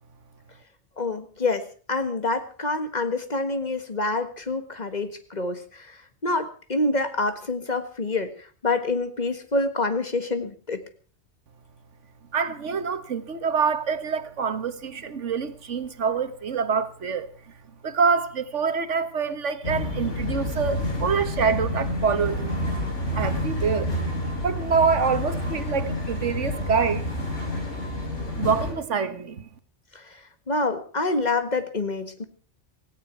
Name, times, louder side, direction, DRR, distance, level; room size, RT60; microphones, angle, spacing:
voice 1, 1.0-10.8 29.9-30.2 30.5-32.2, left 2 dB, 40° left, 1.7 m, -27 dB
voice 2, 12.3-17.3 17.8-22.5 23.1-23.9 24.4-27.1 28.4-29.5, right 5 dB, 85° right, 1.6 m, -26 dB
sound 1, 19.6-28.7, left 1 dB, 85° left, 4.9 m, -29 dB
17.5 x 16.5 x 4.6 m
omnidirectional pair, 1.2 m